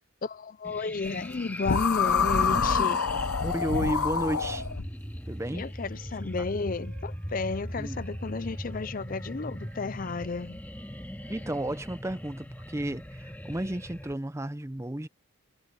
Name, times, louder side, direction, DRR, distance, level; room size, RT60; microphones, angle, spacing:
voice 1, 0.2-3.0 5.5-10.6, left 4 dB, 40° left, 0.5 m, -33 dB
sound 1, 0.6-14.1, equal, 10° left, 2.1 m, -39 dB
sound 2, 1.6-4.9, left 6 dB, 85° left, 0.9 m, -26 dB
voice 2, 3.4-4.7 5.3-5.7 7.8-8.1 11.3-15.1, right 1 dB, 15° right, 0.6 m, -32 dB
sound 3, 5.8-12.3, right 3 dB, 60° right, 7.3 m, -61 dB
head